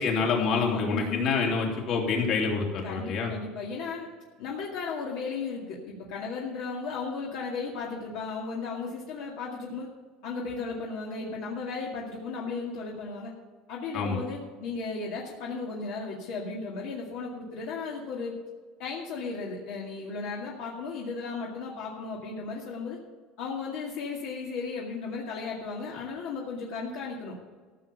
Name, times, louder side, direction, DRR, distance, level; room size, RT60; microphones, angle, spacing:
voice 1, 0.0-3.3 13.9-14.2, left 4 dB, 50° left, 0 dB, 3.0 m, -27 dB
voice 2, 0.7-1.3 2.8-4.1 4.4-9.9 10.2-13.3 13.7-18.3 18.8-23.0 23.4-27.3, left 4 dB, 70° left, -3 dB, 2.2 m, -35 dB
15.0 x 7.1 x 6.9 m, 1.4 s
cardioid pair, 155°, 0 cm